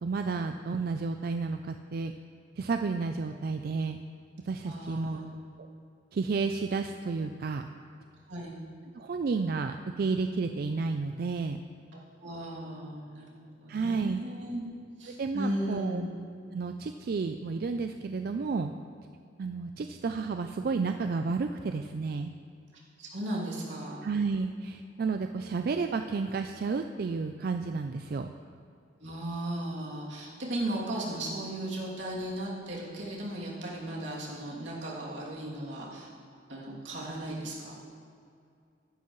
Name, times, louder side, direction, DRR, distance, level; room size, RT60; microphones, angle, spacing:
voice 1, 0.0-2.1 2.6-4.0 4.5-5.2 5.6-5.7 6.1-7.6 8.9-11.6 13.7-14.2 15.2-16.0 16.5-18.7 19.4-22.3 24.0-28.3, right 4 dB, 55° right, 7 dB, 0.4 m, -31 dB
voice 2, 4.6-5.3 8.3-8.6 11.9-13.3 13.6-14.6 15.0-16.1 23.0-24.0 29.0-36.1 36.5-37.7, right 1 dB, 85° right, -5 dB, 2.7 m, -36 dB
15.0 x 12.0 x 3.1 m, 2.4 s
head